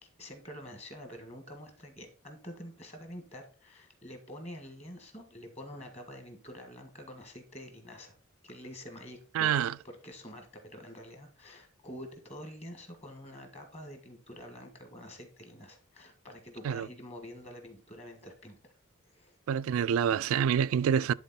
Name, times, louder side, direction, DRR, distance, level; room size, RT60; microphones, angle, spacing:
voice 1, 0.0-8.1 8.4-18.7 19.1-19.4, equal, 30° left, 1.7 m, -47 dB
voice 2, 9.3-9.7 16.6-16.9 19.5-21.1, right 8 dB, 75° right, 0.3 m, -27 dB
10.5 x 4.0 x 4.2 m
head